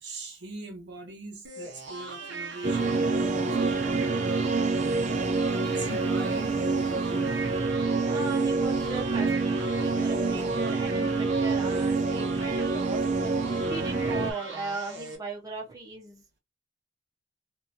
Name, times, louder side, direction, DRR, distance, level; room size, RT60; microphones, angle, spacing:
voice 1, 0.0-7.5 9.8-10.0 10.4-10.5 13.6-13.8, right 2 dB, 70° right, 1.1 m, -42 dB
sound 1, 1.4-15.2, right 2 dB, 85° right, 1.2 m, -40 dB
sound 2, 2.6-14.3, right 3 dB, 40° right, 0.4 m, -27 dB
voice 2, 8.1-16.2, right 3 dB, 20° right, 0.9 m, -38 dB
2.9 x 2.5 x 2.6 m
head